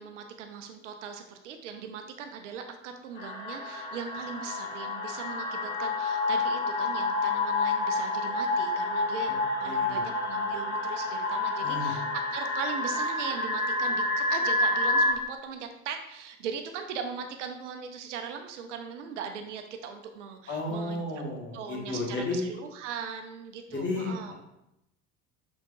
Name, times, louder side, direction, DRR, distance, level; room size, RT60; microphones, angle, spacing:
voice 1, 0.0-12.0 12.3-21.0 21.5-24.3, right 6 dB, 65° right, 6 dB, 0.7 m, -39 dB
sound 1, 3.2-15.1, left 2 dB, 75° left, 1.7 m, -29 dB
voice 2, 9.6-10.1 11.6-11.9 20.5-22.4 23.7-24.3, left 2 dB, 30° left, -3 dB, 2.1 m, -33 dB
6.8 x 5.7 x 2.7 m, 0.85 s
figure-of-eight pair, 65°, 40 cm